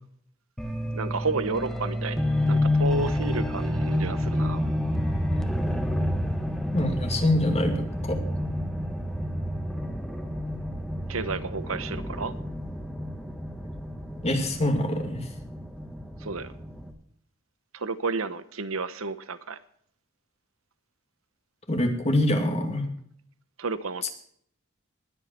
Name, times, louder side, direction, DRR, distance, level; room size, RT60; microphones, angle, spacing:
sound 1, 0.6-16.9, left 1 dB, ahead, 1.5 m, -29 dB
voice 1, 0.9-4.6 11.1-12.3 16.2-16.5 17.7-19.6 23.6-24.1, right 4 dB, 85° right, 12 dB, 1.0 m, -31 dB
voice 2, 6.7-8.2 14.2-15.3 21.7-22.9, left 1 dB, 30° left, 4 dB, 2.4 m, -25 dB
20.5 x 8.4 x 4.4 m, 0.65 s
head